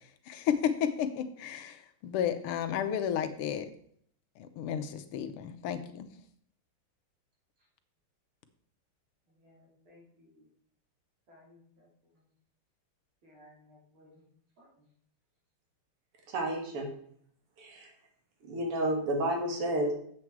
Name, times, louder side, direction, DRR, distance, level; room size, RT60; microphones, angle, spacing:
voice 1, 0.3-3.7 4.4-6.1, left 8 dB, 80° left, 8 dB, 1.7 m, -32 dB
voice 2, 9.3-10.4 11.3-11.9 13.2-14.2 14.6-14.7, left 1 dB, 65° right, -4 dB, 3.9 m, -59 dB
voice 3, 16.3-16.9 17.6-17.9 18.5-19.9, right 1 dB, 85° right, 2 dB, 2.7 m, -30 dB
7.8 x 7.6 x 4.6 m, 0.64 s
omnidirectional pair, 2.4 m